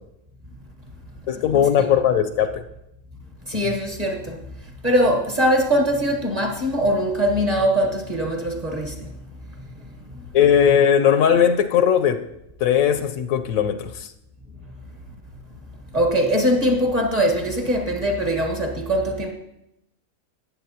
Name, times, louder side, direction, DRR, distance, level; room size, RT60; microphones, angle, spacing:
voice 1, 1.3-2.6 10.3-12.2 12.6-14.1, left 8 dB, 75° left, 9 dB, 1.0 m, -18 dB
voice 2, 3.5-4.4 4.8-8.9 15.9-19.3, equal, 30° right, 2 dB, 1.3 m, -21 dB
14.0 x 8.5 x 2.8 m, 0.84 s
omnidirectional pair, 1.5 m